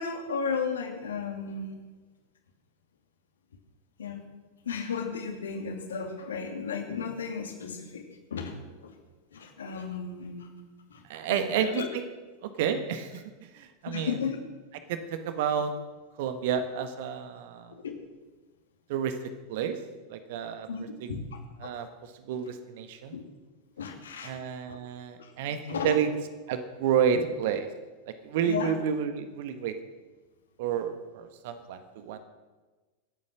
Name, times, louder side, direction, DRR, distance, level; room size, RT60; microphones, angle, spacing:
voice 1, 0.0-1.8 4.0-4.2 4.7-8.0 8.3-8.5 8.8-8.9 9.3-10.5 10.9-11.0 11.3-11.9 13.9-14.4 17.7-18.0 20.7-21.7 23.1-23.2 23.8-24.4 24.7-24.8 25.2-25.3 25.7-25.9 27.1-27.3 28.4-28.7, left 6 dB, 65° left, 4 dB, 2.6 m, -34 dB
voice 2, 11.1-12.1 12.4-14.3 14.9-15.7 16.2-17.7 18.9-19.8 20.1-21.1 21.6-23.2 24.2-26.1 26.5-27.7 28.0-29.8 30.6-32.2, right 8 dB, 50° right, 9 dB, 1.4 m, -30 dB
25.5 x 8.8 x 6.1 m, 1.3 s
figure-of-eight pair, 90°, 0 cm